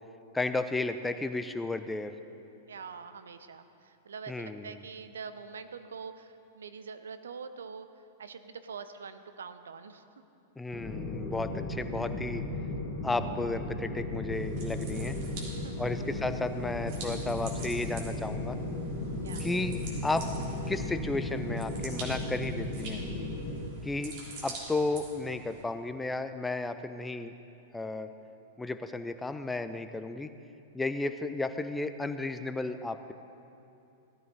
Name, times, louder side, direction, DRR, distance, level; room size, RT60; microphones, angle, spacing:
voice 1, 0.3-2.1 4.3-4.8 10.6-12.4 13.0-15.2 15.8-18.6 19.4-20.3 20.7-23.0 23.8-24.2 24.4-27.3 27.7-28.1 28.6-30.3 30.7-33.1, left 2 dB, 10° left, 10 dB, 0.6 m, -33 dB
voice 2, 2.7-10.0 15.6-16.0 19.2-19.5, right 5 dB, 70° right, 10 dB, 0.7 m, -44 dB
sound 1, 10.7-23.6, left 2 dB, 30° left, 2.9 m, -35 dB
sound 2, 14.3-25.6, right 3 dB, 50° right, 3.2 m, -46 dB
16.5 x 13.5 x 4.0 m, 2.8 s
figure-of-eight pair, 95°, 0 cm